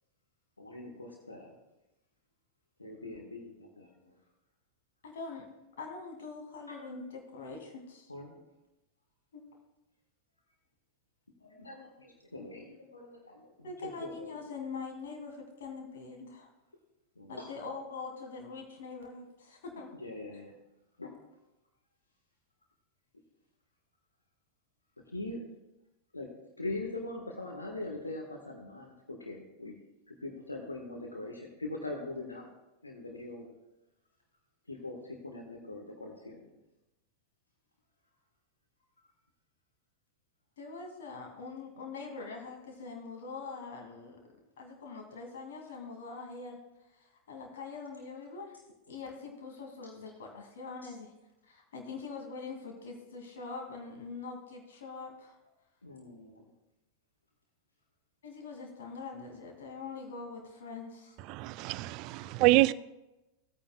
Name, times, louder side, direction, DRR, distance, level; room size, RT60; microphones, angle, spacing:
voice 1, 0.6-1.5 2.8-4.1 6.7-6.8 8.1-8.3 11.4-14.4 17.2-17.5 19.9-20.5 21.0-21.2 25.1-25.4 26.1-29.7 30.1-32.5 32.8-33.5 34.7-36.6 50.8-50.9 55.8-56.5 62.2-62.5, left 2 dB, 80° left, 1.3 m, -42 dB
voice 2, 5.0-5.5 5.8-8.1 9.3-9.4 13.6-16.5 17.3-19.9 40.6-44.2 44.6-46.6 47.0-48.6 48.9-51.1 51.5-55.4 58.2-61.2 62.5-62.7, left 4 dB, 60° left, 2.2 m, -43 dB
voice 3, 61.3-62.7, right 19 dB, 40° right, 0.3 m, -26 dB
16.5 x 8.8 x 2.2 m
figure-of-eight pair, 90°, 0 cm